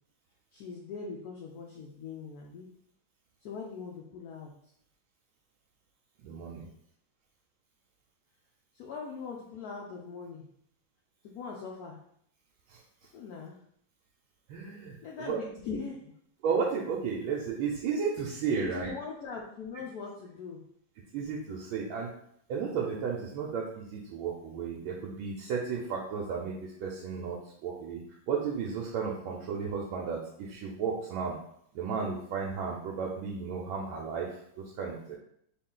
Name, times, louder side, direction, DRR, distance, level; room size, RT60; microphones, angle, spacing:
voice 1, 0.5-2.7 3.4-4.5 8.7-10.5 11.2-12.0 13.1-13.6 15.0-16.1 18.6-20.6, left 5 dB, 85° left, -1 dB, 0.8 m, -41 dB
voice 2, 6.2-6.7 12.7-13.1 14.5-15.4 16.4-18.9 21.1-22.1 22.5-31.4 31.7-35.2, right 5 dB, 85° right, -3 dB, 1.4 m, -34 dB
3.9 x 2.4 x 3.7 m, 0.68 s
omnidirectional pair, 2.2 m